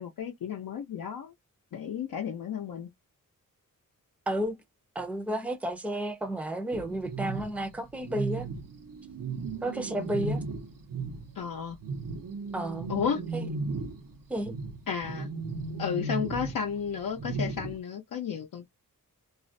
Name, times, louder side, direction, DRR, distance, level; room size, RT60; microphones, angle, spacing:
voice 1, 0.0-1.3 1.7-2.9 11.4-11.8 12.9-13.2 14.9-15.3 15.8-18.7, left 7 dB, 75° left, 0.6 m, -33 dB
voice 2, 4.3-4.6 5.0-8.5 9.6-10.4 12.5-12.9 13.3-13.5 14.3-14.5, right 1 dB, 5° right, 0.5 m, -32 dB
sound 1, 6.7-11.4 11.7-17.8, right 3 dB, 75° right, 0.8 m, -36 dB
2.4 x 2.0 x 2.5 m
wide cardioid pair, 130°, 33 cm